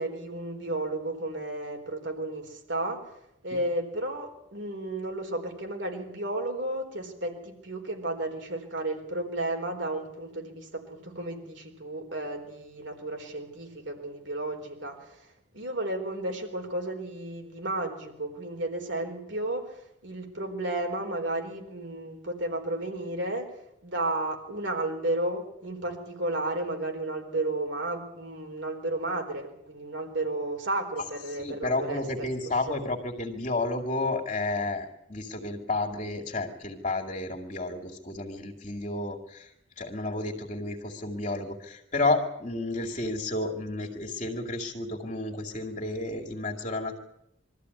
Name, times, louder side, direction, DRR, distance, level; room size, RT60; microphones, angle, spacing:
voice 1, 0.0-3.0 3.4-15.3 15.5-23.5 23.8-32.3 32.7-32.8, right 1 dB, 70° right, 2 dB, 4.3 m, -33 dB
voice 2, 31.4-39.5 39.8-47.0, left 2 dB, 40° left, 1 dB, 2.4 m, -31 dB
23.0 x 14.0 x 9.8 m, 0.80 s
head